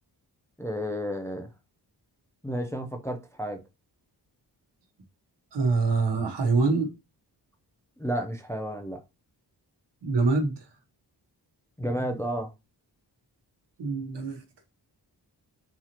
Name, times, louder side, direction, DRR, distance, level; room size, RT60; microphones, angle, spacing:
voice 1, 0.6-1.5 2.4-3.6 8.0-9.0 11.8-12.5, equal, 5° left, 0.4 m, -31 dB
voice 2, 5.5-6.9 10.0-10.6 13.8-14.4, right 3 dB, 75° right, 1.1 m, -25 dB
4.0 x 2.7 x 2.9 m
wide cardioid pair, 120°, 42 cm